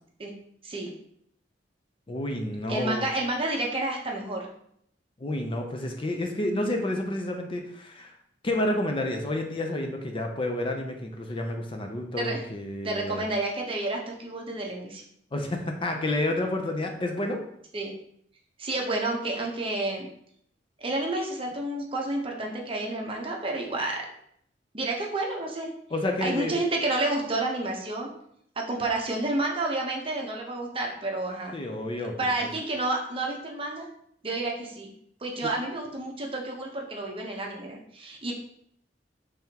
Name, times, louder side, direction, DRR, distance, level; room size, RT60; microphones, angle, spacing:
voice 1, 2.1-3.1 5.2-8.1 8.4-13.2 15.3-17.4 25.9-26.6 31.5-32.1, left 1 dB, 30° left, 3 dB, 0.5 m, -30 dB
voice 2, 2.7-4.5 12.2-12.4 12.8-15.0 17.7-17.9 18.6-20.1 20.8-24.1 24.7-25.7 26.2-28.1 28.6-31.6 32.2-33.9 34.2-34.9 35.2-38.3, right 2 dB, 30° right, 0 dB, 0.8 m, -30 dB
5.5 x 3.4 x 2.8 m, 0.70 s
head